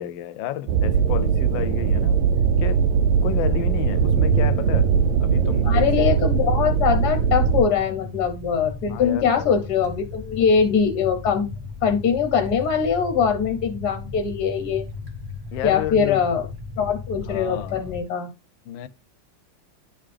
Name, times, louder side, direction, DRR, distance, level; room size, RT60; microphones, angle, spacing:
voice 1, 0.0-2.2 2.6-2.9 3.2-4.9 5.2-6.1 8.9-9.5 15.5-16.2 17.2-17.9 18.7-18.9, left 11 dB, 80° left, 1.3 m, -31 dB
sound 1, 0.7-7.6, right 6 dB, 85° right, 1.4 m, -20 dB
sound 2, 4.6-18.0, left 4 dB, 15° right, 1.2 m, -36 dB
voice 2, 5.6-11.5 11.8-14.8 15.6-16.5 16.8-18.3, left 6 dB, 65° left, 1.2 m, -22 dB
11.5 x 3.8 x 3.3 m
omnidirectional pair, 2.1 m